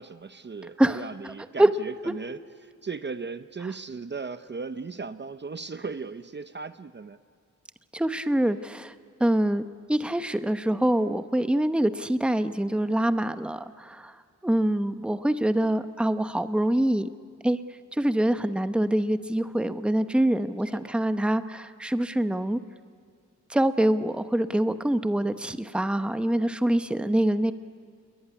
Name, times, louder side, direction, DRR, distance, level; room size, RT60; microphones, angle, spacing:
voice 1, 0.0-7.2 14.5-14.6 20.7-20.9 27.0-27.2, right 4 dB, 35° right, 11 dB, 0.7 m, -37 dB
voice 2, 7.9-8.9 9.2-9.6 9.9-14.1 14.4-17.1 17.4-17.6 17.9-22.6 23.5-27.5, right 1 dB, 5° right, 10 dB, 0.8 m, -25 dB
28.0 x 21.5 x 9.9 m, 2.2 s
wide cardioid pair, 150°, 31 cm